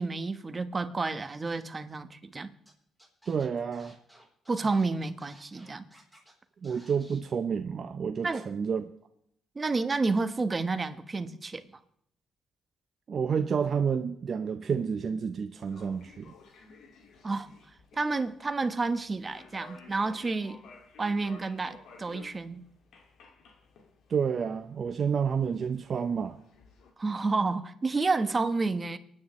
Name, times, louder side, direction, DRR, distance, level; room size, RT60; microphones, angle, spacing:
voice 1, 0.0-2.5 4.5-5.9 8.2-8.5 9.5-11.6 17.2-17.6 17.9-20.6 21.0-22.6 27.0-29.0, right 3 dB, 30° right, 9 dB, 1.2 m, -30 dB
Scratching (performance technique), 2.7-2.8 3.0-6.3 6.6-7.2, right 1 dB, 5° left, 3.8 m, -57 dB
voice 2, 3.3-3.9 6.6-8.9 13.1-16.3 24.1-26.4, right 6 dB, 50° right, 7 dB, 0.7 m, -30 dB
sound 1, 15.6-26.9, left 4 dB, 75° left, 2.2 m, -55 dB
28.5 x 9.8 x 3.2 m, 0.71 s
cardioid pair, 90°, 0 cm